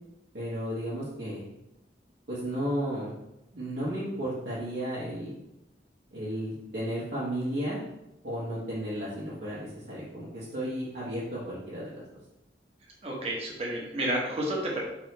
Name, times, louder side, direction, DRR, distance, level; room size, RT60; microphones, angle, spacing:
voice 1, 0.3-1.4 2.3-3.1 3.5-5.3 6.1-7.8 8.2-12.0, equal, 65° right, -10 dB, 1.3 m, -33 dB
voice 2, 13.0-14.8, right 1 dB, 35° right, -2 dB, 1.0 m, -30 dB
3.6 x 3.2 x 4.4 m, 0.89 s
head